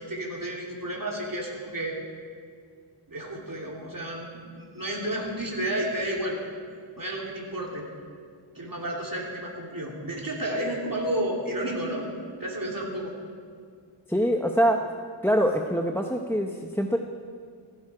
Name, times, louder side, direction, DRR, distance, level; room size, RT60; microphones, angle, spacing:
voice 1, 0.0-2.0 3.1-6.4 7.0-7.8 8.5-12.1 12.4-13.1, right 1 dB, 45° right, -2 dB, 3.2 m, -31 dB
voice 2, 14.1-14.9 15.2-17.0, equal, 5° left, 3 dB, 0.8 m, -24 dB
17.0 x 14.5 x 5.0 m, 2.2 s
wide cardioid pair, 50°, 48 cm